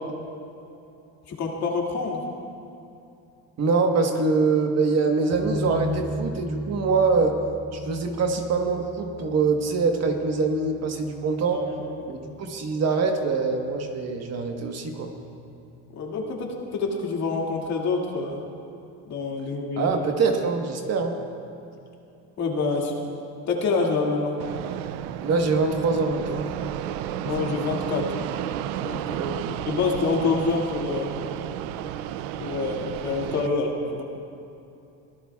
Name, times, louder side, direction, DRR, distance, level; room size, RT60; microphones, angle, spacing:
voice 1, 1.3-2.2 11.5-12.0 15.9-18.4 19.1-19.9 22.4-23.1 23.5-24.4 27.2-28.1 28.8-29.2 29.7-31.1 32.4-34.0, left 4 dB, 45° left, -1 dB, 2.3 m, -27 dB
voice 2, 3.6-7.4 7.7-11.6 12.1-15.1 19.8-21.2 25.2-26.5 29.1-29.6, right 4 dB, 45° right, 4 dB, 1.3 m, -24 dB
sound 1, 5.3-12.4, left 1 dB, ahead, 1.7 m, -36 dB
Fixed-wing aircraft airplane, 24.4-33.5, right 11 dB, 90° right, 0.6 m, -32 dB
23.5 x 16.5 x 2.4 m, 2.7 s
cardioid pair, 130°, 36 cm